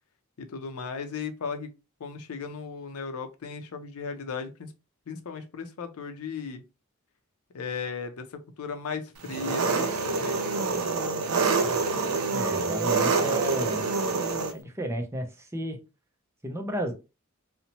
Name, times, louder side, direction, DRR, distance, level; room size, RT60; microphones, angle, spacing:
voice 1, 0.4-1.7 2.0-4.7 5.1-6.6 7.5-10.4, left 5 dB, 80° left, 0.5 m, -36 dB
Engine, 9.2-14.5, right 4 dB, 80° right, 0.5 m, -26 dB
voice 2, 12.2-13.9 14.5-15.8 16.4-16.9, right 1 dB, 10° right, 0.4 m, -33 dB
2.8 x 2.1 x 2.7 m
head